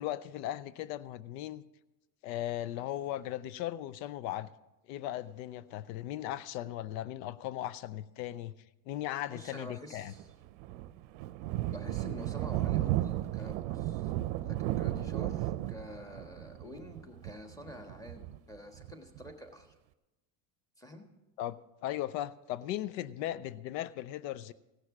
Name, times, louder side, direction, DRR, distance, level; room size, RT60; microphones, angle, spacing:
voice 1, 0.0-1.6 2.2-4.5 4.9-8.5 8.9-10.1 21.4-24.5, left 13 dB, 85° left, 17 dB, 0.6 m, -37 dB
voice 2, 9.3-10.2 11.7-14.1 14.4-19.7 20.8-21.0, equal, 5° left, 3 dB, 1.4 m, -48 dB
Thunder, 10.2-19.3, right 15 dB, 65° right, 0.6 m, -34 dB
16.5 x 6.5 x 6.0 m, 0.99 s
supercardioid pair, 135°, 50 cm